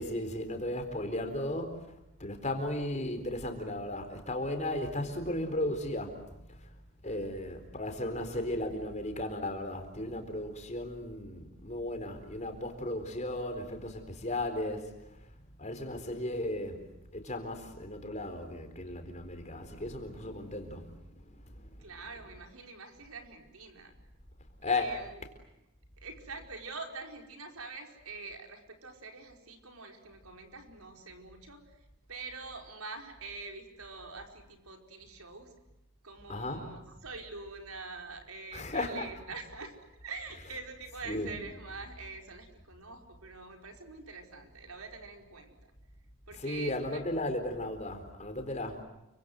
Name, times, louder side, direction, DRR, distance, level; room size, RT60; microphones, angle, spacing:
voice 1, 0.0-1.9 2.2-6.4 7.0-14.9 15.6-16.8 17.1-21.7 24.6-24.9 36.3-36.6 38.5-39.0 41.1-41.3 46.4-48.8, left 1 dB, 35° left, 4.2 m, -35 dB
voice 2, 21.8-23.9 24.7-25.2 26.0-35.5 36.0-39.7 40.0-45.6 46.3-47.0 48.7-48.8, right 3 dB, 90° right, 4.9 m, -45 dB
29.5 x 25.0 x 7.9 m
head